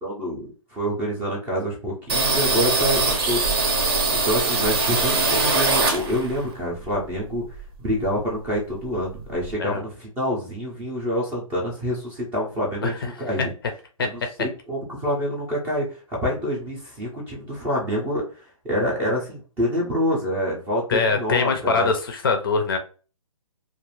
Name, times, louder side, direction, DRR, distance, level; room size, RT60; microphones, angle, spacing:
voice 1, 0.0-3.8 4.1-7.4 7.8-13.5 14.0-21.9, equal, 10° right, -2 dB, 0.5 m, -27 dB
sound 1, 2.1-6.4 6.8-8.2 8.4-8.5 8.8-9.5, right 3 dB, 45° right, 0.7 m, -22 dB
voice 2, 14.0-14.3 20.9-22.8, left 4 dB, 40° left, 6 dB, 0.5 m, -23 dB
2.4 x 2.4 x 3.1 m, 0.36 s
hypercardioid pair, 155°, 19 cm